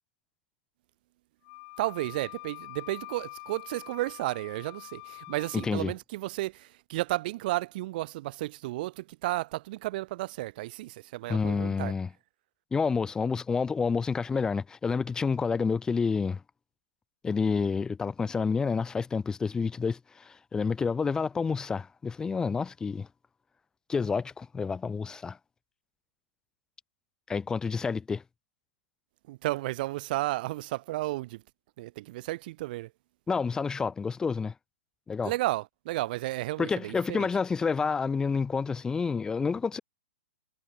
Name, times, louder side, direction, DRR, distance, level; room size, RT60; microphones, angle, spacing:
Wind instrument woodwind instrument, 1.4-5.7, left 40 dB or more, 35° left, 5.7 m, -45 dB
voice 1, 1.8-11.9 29.3-31.4 31.8-32.9 35.2-37.3, right 18 dB, 45° right, 1.7 m, -33 dB
voice 2, 5.6-5.9 11.3-12.1 12.7-16.4 17.2-23.1 23.9-25.4 27.3-28.2 33.3-34.5 35.1-35.3 36.6-39.8, left 5 dB, 10° left, 3.3 m, -29 dB
hypercardioid pair, 145°, 7 cm